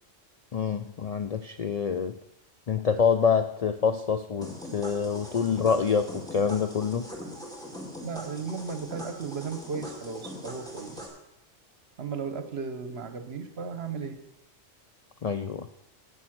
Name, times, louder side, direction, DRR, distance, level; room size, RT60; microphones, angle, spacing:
voice 1, 0.5-2.2 2.7-7.1 15.2-15.7, left 6 dB, 75° left, 9 dB, 0.3 m, -26 dB
sound 1, 4.4-11.1, equal, 5° left, 2.2 m, -41 dB
voice 2, 8.0-11.1 12.0-14.2, right 5 dB, 55° right, 9 dB, 1.2 m, -35 dB
11.0 x 8.3 x 6.0 m, 0.81 s
omnidirectional pair, 1.3 m